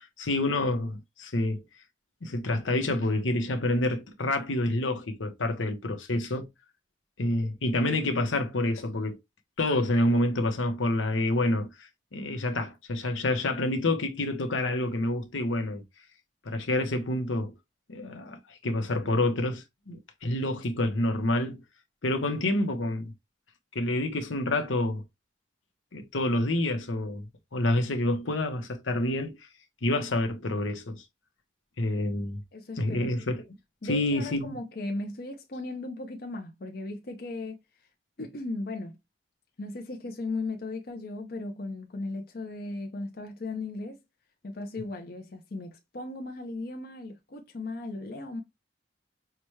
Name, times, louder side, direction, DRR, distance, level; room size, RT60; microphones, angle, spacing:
voice 1, 0.0-1.6 2.2-6.5 7.2-9.2 9.6-15.8 16.4-17.5 17.9-21.6 22.0-23.1 23.7-25.0 25.9-27.2 27.5-29.4 29.8-31.0 31.8-32.4 32.8-33.4 33.8-34.6, left 1 dB, 90° left, 0.9 m, -28 dB
voice 2, 32.5-33.1 33.8-37.6 38.2-39.0 39.6-44.0 44.4-48.4, left 2 dB, 50° left, 0.6 m, -36 dB
5.8 x 2.2 x 3.1 m
head